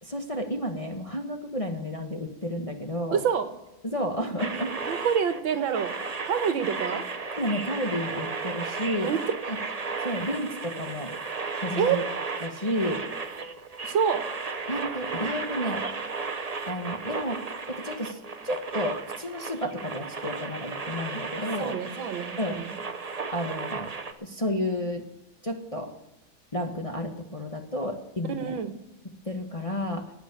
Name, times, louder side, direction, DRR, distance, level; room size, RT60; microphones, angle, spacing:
voice 1, 0.0-3.2 3.8-5.1 7.3-9.1 9.5-9.6 10.0-11.1 11.5-12.0 12.4-13.1 14.7-15.9 16.7-17.4 17.7-18.2 18.4-21.8 22.4-22.6 23.3-23.9 24.2-25.1 25.4-25.9 26.5-28.5 29.2-30.1, left 1 dB, 20° left, 3 dB, 1.1 m, -31 dB
voice 2, 3.1-3.5 4.9-5.9 6.2-7.0 9.0-9.2 11.8-12.0 13.8-14.2 21.6-22.7 28.3-28.8, right 7 dB, 80° right, 9 dB, 1.9 m, -27 dB
sound 1, 4.4-24.1, right 4 dB, 50° right, 0.4 m, -34 dB
18.0 x 6.2 x 9.7 m, 0.94 s
omnidirectional pair, 2.1 m